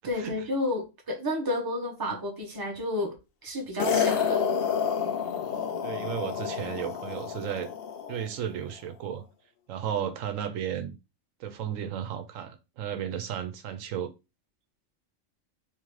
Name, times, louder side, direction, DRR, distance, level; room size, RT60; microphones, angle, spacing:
voice 1, 0.0-3.2 3.4-4.4, left 1 dB, 20° right, 0.9 m, -31 dB
sound 1, 3.8-8.3, left 7 dB, 60° left, 0.7 m, -29 dB
voice 2, 5.8-7.7 8.1-9.2 9.7-10.9 11.4-14.1, right 9 dB, 85° right, 1.0 m, -34 dB
3.7 x 3.1 x 3.1 m
omnidirectional pair, 1.3 m